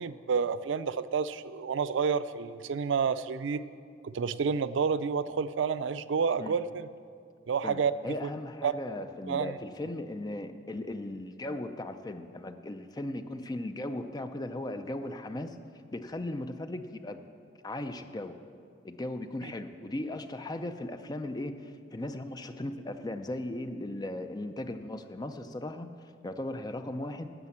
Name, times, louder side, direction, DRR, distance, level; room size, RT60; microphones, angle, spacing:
voice 1, 0.0-3.6 4.0-6.9 7.5-7.9 8.2-8.3 8.6-8.7 9.3-9.6 19.4-19.5, right 6 dB, 90° right, 14 dB, 0.4 m, -29 dB
voice 2, 8.0-17.2 17.6-18.4 18.8-27.3, left 1 dB, 20° left, 8 dB, 0.5 m, -37 dB
11.0 x 6.7 x 7.2 m, 2.2 s
head